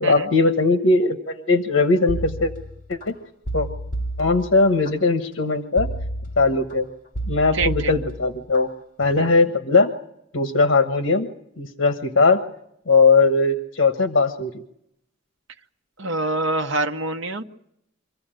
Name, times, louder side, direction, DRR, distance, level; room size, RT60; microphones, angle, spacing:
voice 1, 0.0-2.5 2.9-3.2 3.5-3.7 4.2-5.9 6.4-6.9 7.3-8.7 9.0-9.9 10.3-11.3 11.6-12.4 12.9-14.5, left 3 dB, 75° left, 7 dB, 1.3 m, -19 dB
sound 1, 2.1-3.1 3.5-4.9 5.8-6.7 7.1-8.6 9.0-9.4, right 1 dB, 40° left, 3.0 m, -31 dB
voice 2, 7.5-7.9 9.2-9.3 16.0-17.4, right 2 dB, 70° right, 4 dB, 1.0 m, -25 dB
25.5 x 15.0 x 9.0 m, 0.79 s
head